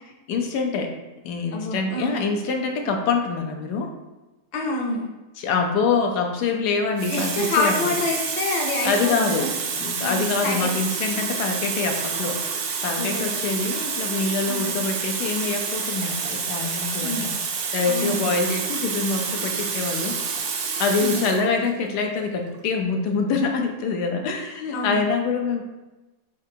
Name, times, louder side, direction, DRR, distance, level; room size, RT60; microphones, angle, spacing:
voice 1, 0.3-0.9 1.2-3.9 5.4-8.0 8.8-12.4 12.8-17.3 17.7-20.5 20.8-25.6, left 4 dB, 90° left, 3 dB, 1.2 m, -25 dB
voice 2, 1.5-2.1 4.5-5.1 7.1-9.5 10.0-10.7 13.0-13.3 14.5-14.6 17.0-17.3 17.9-18.3 21.0-21.2 24.7-25.0, left 2 dB, 55° left, 0 dB, 0.4 m, -27 dB
Water tap faucet, 6.2-6.4 7.0-21.5 22.4-22.5, right 5 dB, 80° right, 1.1 m, -28 dB
7.2 x 2.5 x 2.7 m, 1.1 s
omnidirectional pair, 1.7 m